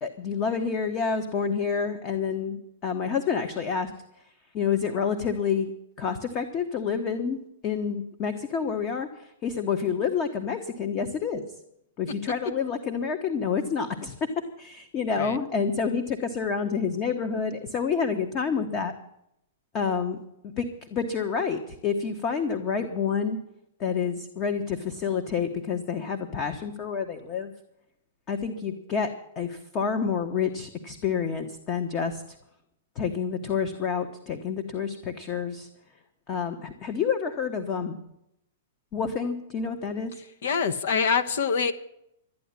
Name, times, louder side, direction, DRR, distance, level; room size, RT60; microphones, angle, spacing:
voice 1, 0.0-3.9 4.5-5.7 6.0-7.4 7.6-9.1 9.4-11.4 12.0-14.1 14.6-18.9 19.7-20.2 20.6-20.7 20.9-23.4 23.8-27.5 28.3-29.1 29.4-32.2 33.0-35.7 36.3-37.9 38.9-40.1, left 6 dB, 30° left, 7 dB, 1.3 m, -28 dB
voice 2, 40.4-41.7, left 5 dB, 70° left, 11 dB, 1.3 m, -25 dB
13.5 x 9.5 x 9.7 m, 0.79 s
hypercardioid pair, 150°, 0 cm